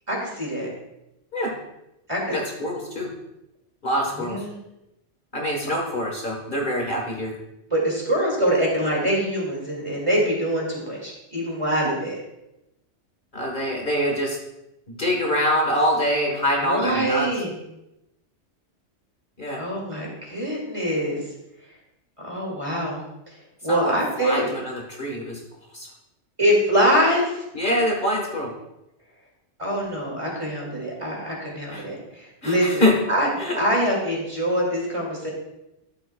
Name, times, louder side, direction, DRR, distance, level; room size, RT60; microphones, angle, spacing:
voice 1, 0.1-0.7 2.1-2.3 4.2-4.6 7.7-12.2 16.6-17.6 19.6-21.2 22.2-23.0 23.3-23.4 23.6-24.4 26.4-27.4 29.6-32.8 33.1-33.3 33.5-35.3, equal, 25° right, -2 dB, 2.3 m, -24 dB
voice 2, 2.3-3.1 3.8-4.4 5.3-7.3 13.3-14.4 14.9-17.3 19.4-19.6 23.7-25.4 25.7-25.9 27.5-28.5 31.7-31.8 32.4-32.9 33.4-33.6, equal, 45° left, 0 dB, 1.5 m, -25 dB
12.5 x 7.6 x 2.3 m, 0.90 s
omnidirectional pair, 1.2 m